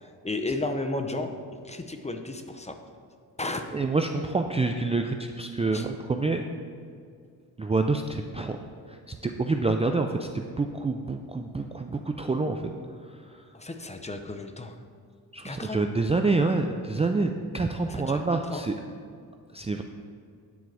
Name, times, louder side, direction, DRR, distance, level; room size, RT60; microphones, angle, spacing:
voice 1, 0.2-1.4 1.6-2.8 3.4-3.6 5.7-5.9 13.5-14.8 15.4-15.8 17.8-18.2 18.5-18.6, left 2 dB, 15° left, 7 dB, 0.7 m, -33 dB
voice 2, 3.7-6.4 7.6-8.6 8.9-12.6 15.3-18.8 19.5-19.8, right 3 dB, 15° right, 4 dB, 0.4 m, -27 dB
9.3 x 4.6 x 7.4 m, 2.2 s
cardioid pair, 100°, 38 cm